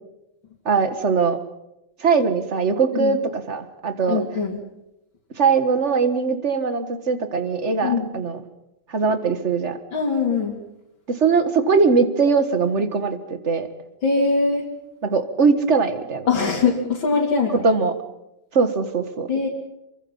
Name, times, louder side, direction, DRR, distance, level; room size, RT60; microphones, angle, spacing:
voice 1, 0.7-1.4 2.0-4.2 5.4-8.4 8.9-9.8 11.1-13.7 15.0-16.3 17.6-17.9 18.5-19.5, right 5 dB, 35° right, 9 dB, 2.0 m, -21 dB
voice 2, 4.1-4.6 7.8-8.1 9.9-10.6 14.0-14.7 16.3-17.6 19.3-19.5, left 4 dB, 85° left, -3 dB, 3.7 m, -22 dB
27.5 x 24.0 x 5.7 m, 0.88 s
omnidirectional pair, 2.1 m